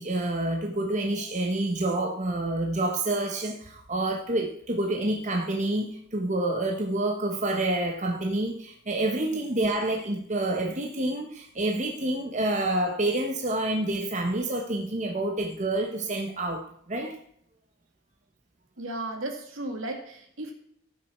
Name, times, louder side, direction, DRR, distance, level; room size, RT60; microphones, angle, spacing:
voice 1, 0.0-17.2, right 1 dB, 35° right, 2 dB, 1.0 m, -28 dB
voice 2, 18.8-20.5, right 2 dB, 75° right, 2 dB, 2.3 m, -35 dB
15.5 x 6.5 x 4.4 m, 0.67 s
head